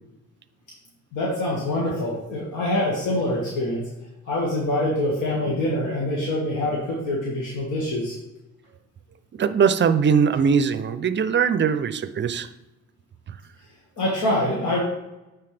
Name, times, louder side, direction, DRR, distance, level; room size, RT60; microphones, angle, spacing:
voice 1, 1.1-3.8 4.3-8.1 14.0-14.8, left 1 dB, 80° left, -5 dB, 1.8 m, -25 dB
voice 2, 9.3-12.5, right 6 dB, 40° right, 12 dB, 0.5 m, -21 dB
9.4 x 4.5 x 3.4 m, 0.98 s
cardioid pair, 90°, 30 cm